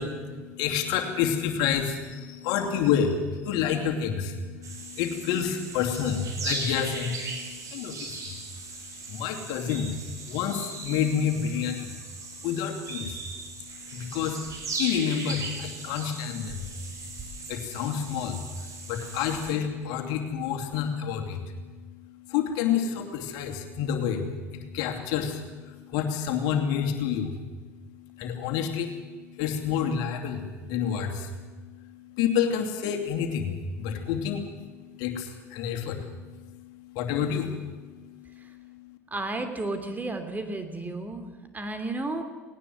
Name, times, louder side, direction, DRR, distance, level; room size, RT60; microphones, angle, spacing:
voice 1, 0.0-8.1 9.1-9.9 10.3-11.9 12.4-13.2 13.9-14.4 14.7-16.7 17.5-18.4 18.9-21.4 22.3-24.3 24.5-25.4 25.9-27.4 28.2-29.0 29.4-31.3 32.2-34.5 35.0-36.1 36.9-37.5, left 8 dB, 65° left, 4 dB, 2.7 m, -28 dB
sound 1, 4.6-19.5, right 3 dB, 45° right, 6.3 m, -38 dB
voice 2, 39.1-42.2, right 2 dB, 20° right, 8 dB, 2.9 m, -33 dB
19.0 x 18.5 x 7.7 m, 1.4 s
hypercardioid pair, 70°, 8 cm